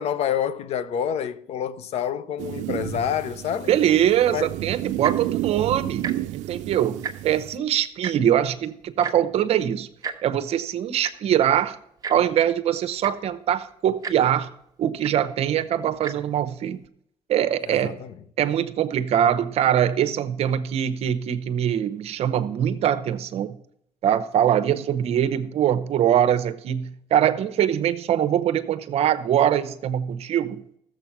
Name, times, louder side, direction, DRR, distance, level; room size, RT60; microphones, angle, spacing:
voice 1, 0.0-3.7 4.3-4.5 17.7-18.1, left 9 dB, 60° left, 0.7 m, -27 dB
sound 1, 2.4-7.6, right 15 dB, 80° right, 0.4 m, -31 dB
voice 2, 3.7-6.1 6.3-9.9 10.2-11.8 12.1-14.5 14.8-16.8 17.3-18.0 18.4-23.5 24.0-30.6, right 10 dB, 55° right, 0.9 m, -23 dB
Tick-tock, 4.9-5.3 6.0-6.1 6.5-6.6 6.9-7.4 8.0-8.1 9.0-9.2 10.0-10.2 11.0-11.1 12.0-12.2 12.7-12.8 13.0-13.3 14.0-14.2 15.0-15.1 15.9-16.1 16.8-16.9, right 6 dB, 30° right, 1.1 m, -32 dB
14.0 x 7.3 x 5.9 m
cardioid pair, 130°, 12 cm